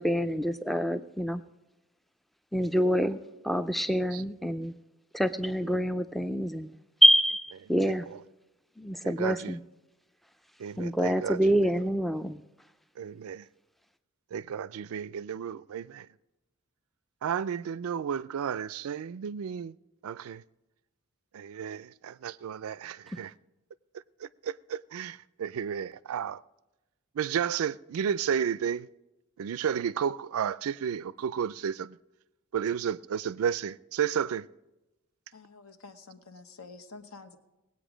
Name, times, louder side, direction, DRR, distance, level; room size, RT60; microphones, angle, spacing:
voice 1, 0.0-1.4 2.5-3.2 3.4-4.7 5.1-6.7 7.0-8.1 8.8-9.6 10.8-12.4, equal, ahead, 0.3 m, -26 dB
voice 2, 9.0-9.5 10.6-11.4 13.0-13.4 14.3-16.1 17.2-19.7 20.0-20.4 21.3-23.3 24.2-26.4 27.2-28.9 29.4-32.0 32.5-34.5, right 8 dB, 80° right, 0.4 m, -32 dB
voice 3, 35.3-37.4, left 4 dB, 80° left, 1.0 m, -48 dB
19.5 x 8.5 x 5.0 m
head